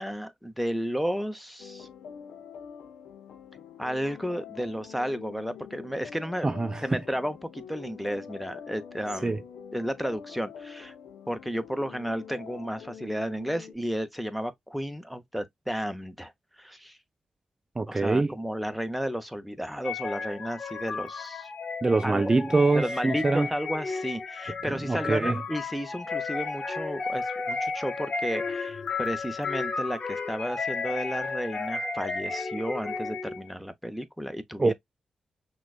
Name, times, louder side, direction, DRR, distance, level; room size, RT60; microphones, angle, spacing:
voice 1, 0.0-1.9 3.8-9.4 9.7-10.9 11.3-16.3 16.6-17.0 17.9-21.5 22.0-22.2 22.7-34.7, equal, ahead, 0.7 m, -33 dB
sound 1, 1.6-13.7, left 7 dB, 85° left, 0.6 m, -45 dB
voice 2, 6.4-7.0 9.2-9.4 17.8-18.3 21.8-23.5 24.7-25.4 34.6-34.7, right 3 dB, 25° right, 0.3 m, -24 dB
sound 2, 19.8-33.5, left 4 dB, 50° left, 0.9 m, -33 dB
5.9 x 2.3 x 2.4 m
cardioid pair, 55°, 2 cm